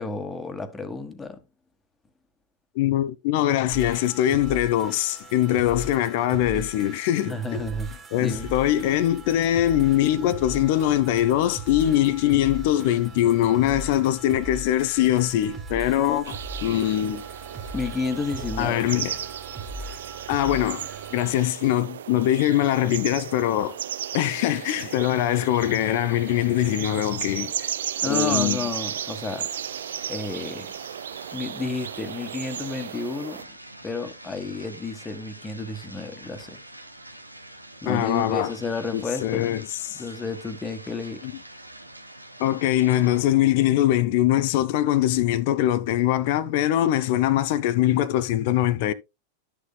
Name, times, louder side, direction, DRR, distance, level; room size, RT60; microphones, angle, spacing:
voice 1, 0.0-1.4 7.3-7.9 8.2-8.5 17.7-18.9 28.0-29.5 30.1-30.7 31.3-33.5 33.8-36.6 37.8-39.6 39.9-41.2, left 3 dB, 15° left, 1.5 m, -31 dB
voice 2, 2.8-7.7 8.1-17.2 18.6-19.2 20.3-23.8 24.1-27.7 28.1-28.6 37.9-38.5 38.9-40.0 41.2-41.3 42.4-48.9, left 12 dB, 50° left, 0.7 m, -22 dB
sound 1, 3.7-21.3, right 2 dB, 20° right, 3.1 m, -39 dB
sound 2, 16.2-33.4, right 10 dB, 60° right, 0.4 m, -34 dB
sound 3, 28.0-43.2, right 1 dB, 85° right, 0.9 m, -45 dB
12.5 x 6.8 x 2.2 m
figure-of-eight pair, 90°, 0 cm